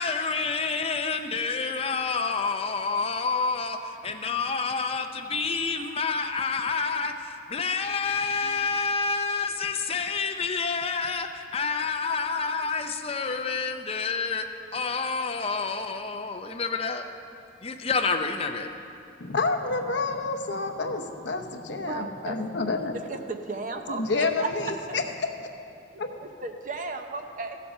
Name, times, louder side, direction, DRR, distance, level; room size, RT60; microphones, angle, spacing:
voice 1, 0.0-3.8 4.0-14.4 14.7-17.0 17.6-18.7, left 4 dB, 30° left, 6 dB, 0.5 m, -28 dB
voice 2, 19.2-23.0 23.9-25.3 26.0-26.1, left 3 dB, 65° left, 6 dB, 0.8 m, -29 dB
voice 3, 21.7-22.4 22.9-24.5 24.9-25.0 26.2-27.6, right 3 dB, 40° right, 5 dB, 0.7 m, -35 dB
15.5 x 7.5 x 5.4 m, 2.6 s
head